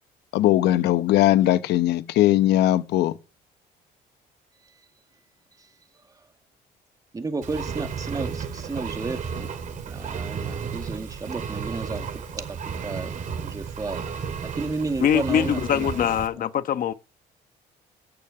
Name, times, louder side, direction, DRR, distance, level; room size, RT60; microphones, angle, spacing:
voice 1, 0.3-3.2, left 14 dB, 80° left, 1.0 m, -19 dB
voice 2, 7.1-9.5 9.9-14.0 14.4-16.0, right 3 dB, 20° right, 2.1 m, -33 dB
Engine, 7.4-16.3, right 6 dB, 50° right, 2.6 m, -33 dB
voice 3, 15.0-16.9, left 9 dB, 55° left, 1.3 m, -23 dB
15.0 x 6.8 x 8.9 m
cardioid pair, 110°, 17 cm